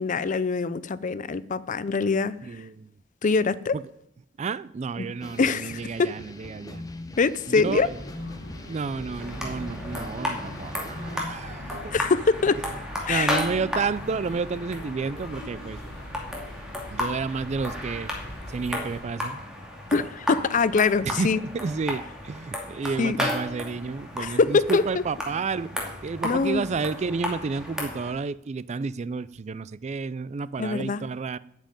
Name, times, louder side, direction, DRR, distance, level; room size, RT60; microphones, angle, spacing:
voice 1, 0.0-2.3 3.2-3.8 5.0-5.1 5.4-6.1 7.2-7.9 11.9-12.6 13.1-13.4 19.9-21.4 23.0-23.2 24.2-25.0 26.2-26.7 30.6-31.0, left 4 dB, 40° left, 0.5 m, -24 dB
voice 2, 2.5-2.9 3.7-3.8 4.4-6.8 7.5-7.9 8.7-11.9 13.1-15.8 16.9-18.1 18.5-19.4 21.0-25.7 26.0-31.4, right 4 dB, 35° right, 0.4 m, -31 dB
sound 1, 5.2-11.3, left 1 dB, 20° left, 0.9 m, -42 dB
sound 2, 7.6-19.0, equal, 55° left, 4.3 m, -42 dB
sound 3, 9.2-28.1, left 1 dB, 5° right, 2.4 m, -34 dB
8.7 x 7.5 x 9.1 m
head